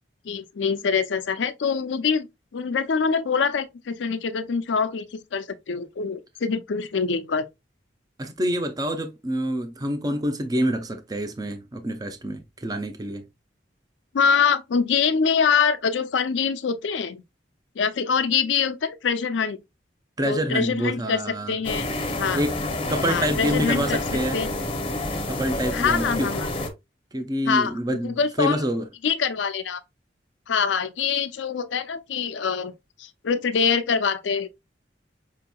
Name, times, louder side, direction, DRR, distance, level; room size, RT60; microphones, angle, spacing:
voice 1, 0.3-2.3 2.5-7.5 14.1-17.2 17.8-19.6 20.2-21.2 21.5-21.9 22.2-22.4 23.1-24.0 24.3-24.5 25.7-26.5 27.4-27.7 28.0-28.6 29.0-29.8 30.5-32.7 33.0-34.5, left 6 dB, 90° left, 0.5 m, -24 dB
voice 2, 8.2-13.2 20.2-21.6 22.3-22.6 22.9-24.4 25.3-26.3 27.1-28.9, equal, 20° right, 0.5 m, -27 dB
sound 1, 21.6-26.7, left 2 dB, 30° left, 0.7 m, -28 dB
5.1 x 2.9 x 2.2 m
head